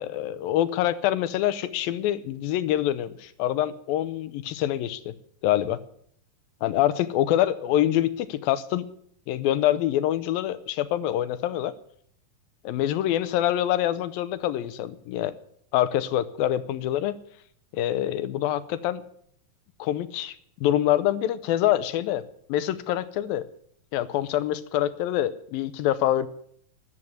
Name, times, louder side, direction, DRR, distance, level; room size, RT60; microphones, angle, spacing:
voice 1, 0.0-5.1 5.4-5.8 6.6-8.8 9.3-11.8 12.6-15.3 15.7-17.2 17.7-19.0 19.8-20.4 20.6-22.2 22.5-23.4 23.9-26.3, left 12 dB, 80° left, 15 dB, 2.5 m, -25 dB
13.5 x 11.5 x 9.2 m, 0.64 s
omnidirectional pair, 4.3 m